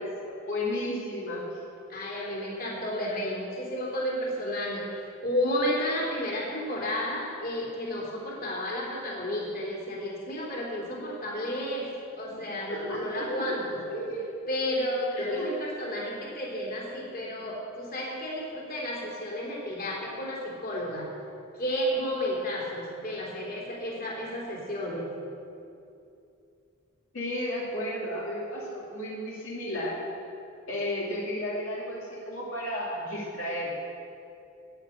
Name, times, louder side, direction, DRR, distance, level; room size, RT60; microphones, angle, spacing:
voice 1, 0.0-1.6 12.7-13.4 13.9-14.2 15.2-15.6 27.1-30.0 30.7-33.7, left 1 dB, 75° left, -6 dB, 2.4 m, -33 dB
voice 2, 1.9-11.9 12.2-13.8 14.5-21.1 21.5-25.1, equal, 45° left, -3 dB, 3.3 m, -32 dB
10.0 x 9.8 x 8.5 m, 2.7 s
head